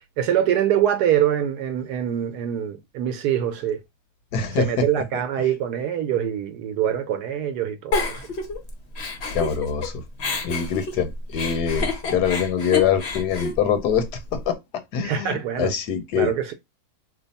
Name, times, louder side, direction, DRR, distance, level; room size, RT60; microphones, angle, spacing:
voice 1, 0.2-3.8 4.5-8.2 15.0-15.7 16.2-16.5, right 10 dB, 85° right, 1.1 m, -24 dB
voice 2, 4.3-4.8 9.3-10.0 10.4-14.6 14.9-16.3, left 7 dB, 85° left, 1.3 m, -24 dB
Giggle, 7.9-9.9 10.2-14.4, left 3 dB, 50° left, 0.9 m, -28 dB
3.2 x 2.3 x 4.0 m
omnidirectional pair, 1.7 m